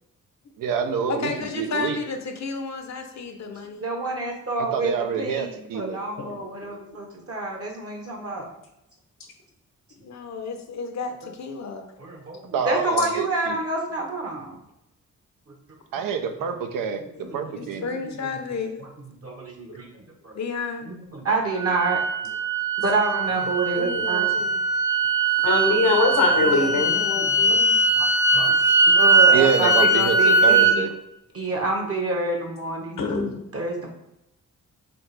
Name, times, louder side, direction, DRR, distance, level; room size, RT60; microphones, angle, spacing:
voice 1, 0.6-2.0 4.7-6.0 12.5-13.6 15.9-17.8 29.3-30.9, right 7 dB, 85° right, 7 dB, 0.5 m, -27 dB
voice 2, 1.1-3.9 10.0-11.9 17.5-18.8 20.3-20.9 23.7-24.6 26.3-27.8, left 5 dB, 55° left, 5 dB, 0.6 m, -32 dB
voice 3, 3.8-8.5 12.0-14.6 16.0-16.1 17.2-17.7 18.0-18.1 19.2-20.3 20.9-22.0 22.8-24.3 26.3-26.4 27.2-27.4 28.0-30.8 31.3-33.1 33.5-33.9, right 2 dB, 45° right, 1 dB, 0.9 m, -28 dB
sound 1, 21.6-30.7, right 3 dB, 10° right, 0.6 m, -20 dB
voice 4, 25.4-27.0 33.0-33.4, left 3 dB, 80° left, 1 dB, 0.9 m, -22 dB
4.3 x 2.4 x 3.2 m, 0.84 s
cardioid pair, 60°, 32 cm